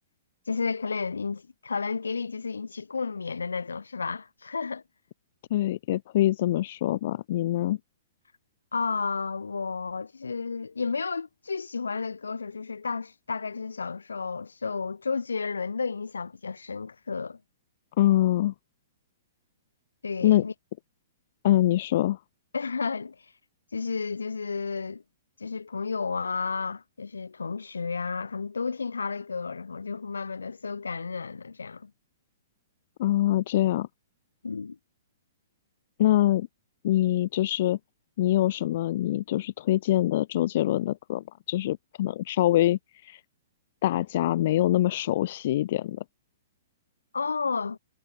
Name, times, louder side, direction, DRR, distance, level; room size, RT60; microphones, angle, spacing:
voice 1, 0.5-4.8 8.7-17.4 20.0-20.5 22.5-23.2 23.7-25.0 25.4-31.9 34.4-34.8 47.1-47.8, left 4 dB, 85° left, 7.4 m, -32 dB
voice 2, 5.5-7.8 18.0-18.5 20.2-20.4 21.4-22.2 33.0-33.9 36.0-36.5 36.8-37.8 38.2-43.2 43.8-46.0, left 14 dB, 55° left, 0.7 m, -24 dB
hypercardioid pair, 125°, 0 cm